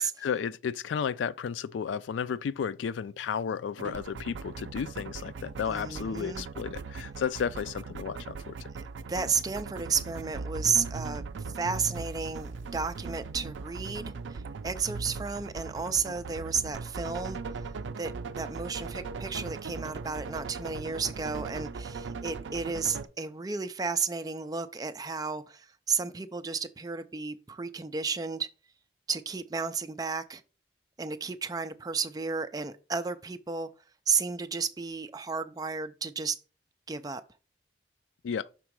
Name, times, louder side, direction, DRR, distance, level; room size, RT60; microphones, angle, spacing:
voice 1, 0.0-8.6 38.2-38.5, left 7 dB, 85° left, 0.3 m, -33 dB
sound 1, 3.8-23.1, right 4 dB, 85° right, 0.4 m, -39 dB
voice 2, 5.7-6.5 8.7-17.7 18.0-28.5 29.1-30.4 31.0-33.7 34.1-36.4 36.9-37.2, right 5 dB, 20° right, 0.4 m, -33 dB
6.0 x 3.6 x 4.7 m
head